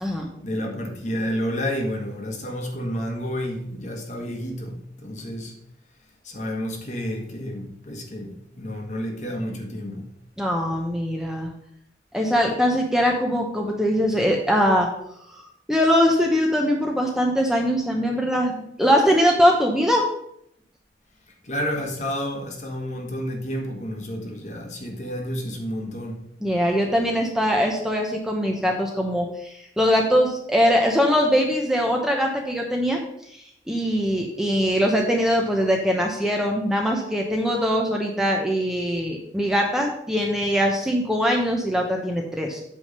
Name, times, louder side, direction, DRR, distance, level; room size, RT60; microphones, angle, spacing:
voice 1, 0.4-5.5 6.2-10.0 21.4-26.2, equal, 40° left, 1.3 m, -30 dB
voice 2, 10.4-11.5 12.1-14.9 15.3-15.4 15.7-18.5 18.8-20.0 26.4-33.0 33.7-42.6, equal, 5° right, 0.8 m, -22 dB
8.4 x 3.5 x 6.5 m
head